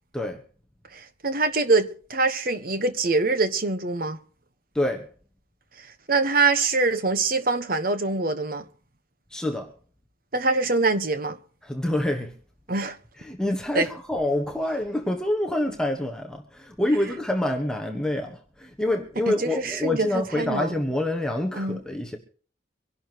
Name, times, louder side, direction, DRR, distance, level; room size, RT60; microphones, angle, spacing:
voice 1, 0.9-4.2 5.8-8.6 10.3-11.4 12.7-13.0 13.7-13.9 19.3-20.7 21.6-21.8, right 3 dB, 45° right, 1.2 m, -24 dB
voice 2, 4.7-5.1 9.3-9.7 11.6-12.3 13.2-22.2, left 1 dB, 5° left, 1.3 m, -27 dB
25.0 x 11.5 x 3.0 m
head